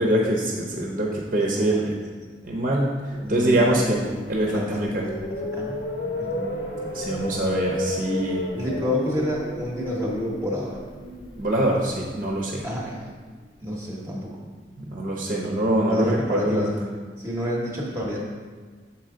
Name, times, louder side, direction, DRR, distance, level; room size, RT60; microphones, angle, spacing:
voice 1, 0.0-1.9 2.4-2.9 3.3-4.0 4.3-5.1 6.9-8.4 11.4-12.6 14.8-16.7, right 1 dB, 45° right, -2 dB, 0.7 m, -24 dB
voice 2, 3.1-3.9 4.4-4.8 5.1-5.8 6.2-6.4 8.5-10.8 12.6-13.0 13.6-14.4 15.9-18.2, left 1 dB, 15° right, -3 dB, 0.9 m, -29 dB
sound 1, 3.2-13.3, left 1 dB, 90° left, 1.2 m, -33 dB
7.3 x 4.5 x 3.7 m, 1.5 s
head